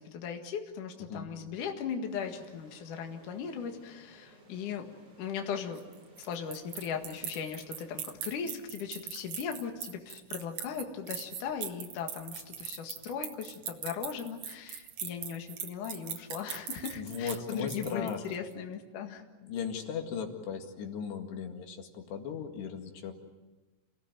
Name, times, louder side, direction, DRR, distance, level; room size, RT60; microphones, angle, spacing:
voice 1, 0.0-4.9 5.2-5.8 6.2-19.2, left 7 dB, 55° left, 4 dB, 3.0 m, -38 dB
sound 1, 2.1-8.7, right 1 dB, 35° right, 7.6 m, -59 dB
sound 2, 5.8-18.4, right 9 dB, 60° right, 2.0 m, -40 dB
voice 2, 17.0-18.2 19.4-23.1, left 6 dB, 80° left, 4 dB, 4.2 m, -37 dB
29.5 x 17.5 x 9.4 m, 1.2 s
omnidirectional pair, 4.8 m